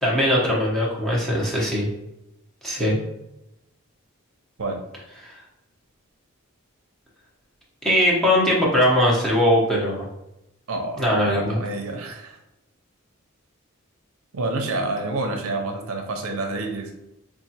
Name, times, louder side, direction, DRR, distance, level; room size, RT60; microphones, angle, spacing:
voice 1, 0.0-1.9 2.6-3.0 7.8-10.1 11.0-11.6, equal, ahead, -6 dB, 0.8 m, -20 dB
voice 2, 10.7-12.4 14.3-17.0, right 2 dB, 75° right, 3 dB, 0.6 m, -28 dB
4.8 x 2.4 x 2.8 m, 0.89 s
head